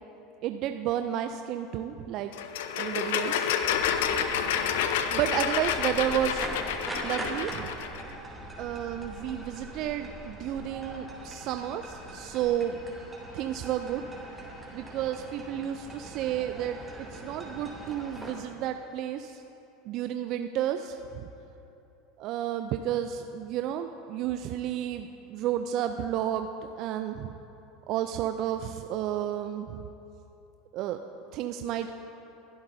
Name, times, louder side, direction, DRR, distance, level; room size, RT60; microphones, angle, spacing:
voice 1, 0.4-2.3 2.8-3.5 5.0-6.5 7.0-7.7 8.6-12.8 13.3-14.0 14.7-16.8 17.1-19.4 19.9-21.3 22.2-26.5 26.8-27.3 27.9-29.8 30.7-31.0 31.3-31.9, right 11 dB, 55° right, 7 dB, 0.4 m, -31 dB
sound 1, 2.3-8.0, left 8 dB, 70° left, 0.6 m, -29 dB
sound 2, 3.6-18.3, right 1 dB, 15° right, 2.8 m, -42 dB
22.5 x 11.5 x 2.7 m, 2.9 s
hypercardioid pair, 80°, 0 cm